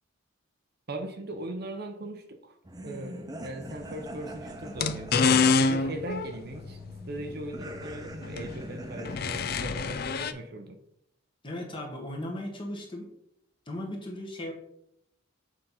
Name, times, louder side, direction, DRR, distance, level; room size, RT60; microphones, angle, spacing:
voice 1, 0.9-2.5 2.8-6.8 7.1-10.8, right 1 dB, 50° right, 0.7 m, -39 dB
sound 1, 2.7-9.2, right 1 dB, 20° right, 0.6 m, -43 dB
sound 2, 3.7-3.8 4.6-10.3, left 5 dB, 50° left, 0.4 m, -27 dB
voice 2, 11.4-13.1 13.7-14.5, left 1 dB, 25° left, 1.4 m, -36 dB
6.6 x 4.0 x 5.6 m
head